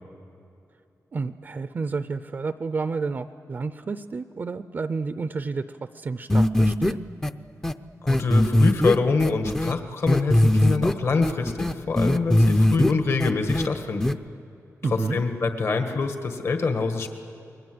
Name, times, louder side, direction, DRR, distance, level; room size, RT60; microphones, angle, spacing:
voice 1, 1.1-5.6 5.9-7.0 14.8-15.2, right 4 dB, 35° right, 11 dB, 0.5 m, -30 dB
sound 1, 6.3-6.9 7.2-7.3 7.6-7.7 8.1-9.7 10.1-10.9 11.2-12.9 13.2-13.7 14.0-14.1, left 1 dB, 10° left, 0.6 m, -20 dB
voice 2, 8.0-14.2 14.9-17.1, left 4 dB, 50° left, 6 dB, 1.7 m, -25 dB
29.5 x 22.0 x 7.9 m, 2.7 s
wide cardioid pair, 170°, 6 cm